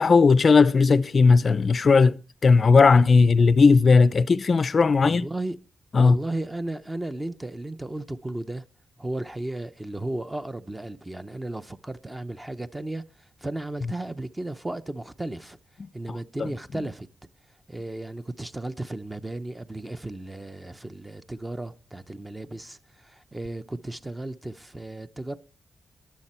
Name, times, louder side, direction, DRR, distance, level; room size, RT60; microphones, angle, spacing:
voice 1, 0.0-2.2 2.4-5.2 5.9-6.2 16.4-16.5, left 4 dB, 40° left, 0.5 m, -17 dB
voice 2, 5.0-5.6 6.0-8.6 9.0-15.6 15.9-17.1 17.7-25.4, right 2 dB, 10° right, 0.7 m, -34 dB
22.0 x 7.5 x 4.3 m
wide cardioid pair, 135°, 0 cm